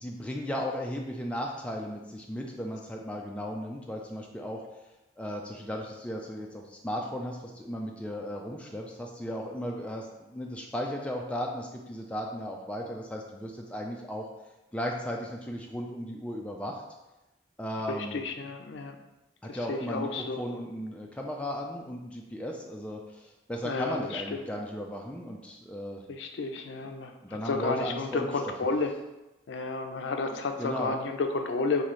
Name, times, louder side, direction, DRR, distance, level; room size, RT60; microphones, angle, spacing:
voice 1, 0.0-4.6 5.2-14.3 14.7-16.8 17.6-18.2 19.4-26.0 27.2-28.3 30.6-31.0, equal, 5° left, 0 dB, 0.3 m, -36 dB
voice 2, 17.9-19.0 19.5-20.4 23.6-24.2 26.1-27.1 27.4-28.9 29.5-31.8, left 3 dB, 80° left, 5 dB, 0.4 m, -31 dB
3.0 x 2.7 x 4.1 m, 1.0 s
head